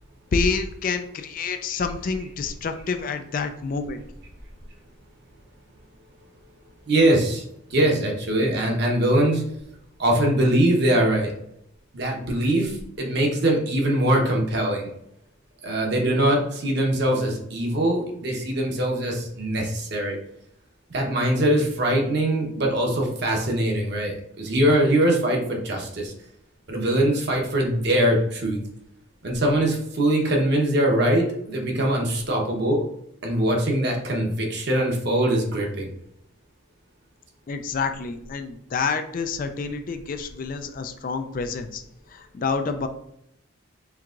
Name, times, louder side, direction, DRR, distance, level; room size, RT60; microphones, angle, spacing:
voice 1, 0.3-4.0 37.5-41.8 42.1-42.9, left 4 dB, 40° left, 8 dB, 0.3 m, -28 dB
voice 2, 6.9-7.4 7.7-9.4 10.0-11.3 11.9-14.9 15.6-20.2 20.9-26.1 26.7-28.6 29.2-32.8 33.2-35.9, right 1 dB, 50° right, 0 dB, 0.9 m, -22 dB
4.6 x 3.5 x 2.5 m, 0.76 s
head